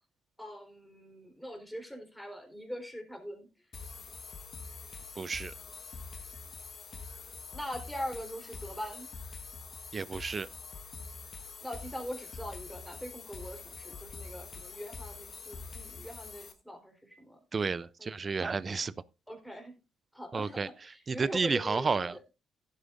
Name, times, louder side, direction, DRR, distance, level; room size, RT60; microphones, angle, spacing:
voice 1, 0.4-3.5 7.5-9.1 11.6-17.4 18.0-18.1 18.4-18.6 19.3-19.7 20.1-22.2, equal, ahead, 3.7 m, -42 dB
sound 1, 3.7-16.5, left 4 dB, 45° left, 1.3 m, -45 dB
voice 2, 5.2-5.5 9.9-10.5 17.5-18.9 20.3-20.7 21.1-22.1, right 4 dB, 40° right, 0.5 m, -31 dB
16.0 x 8.3 x 2.5 m
hypercardioid pair, 50°, 0 cm